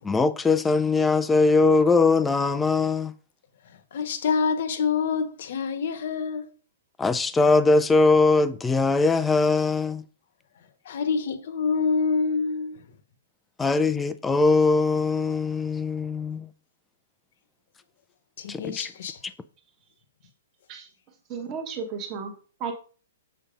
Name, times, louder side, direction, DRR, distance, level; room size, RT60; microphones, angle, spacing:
voice 1, 0.0-3.1 7.0-10.0 13.6-16.5 18.5-18.9, left 3 dB, 5° left, 0.3 m, -21 dB
voice 2, 3.9-6.5 10.9-12.8 18.4-19.2, left 5 dB, 45° left, 1.0 m, -26 dB
voice 3, 21.3-22.3 22.6-22.7, right 6 dB, 20° right, 1.1 m, -33 dB
7.2 x 4.1 x 5.1 m
hypercardioid pair, 180°, 0 cm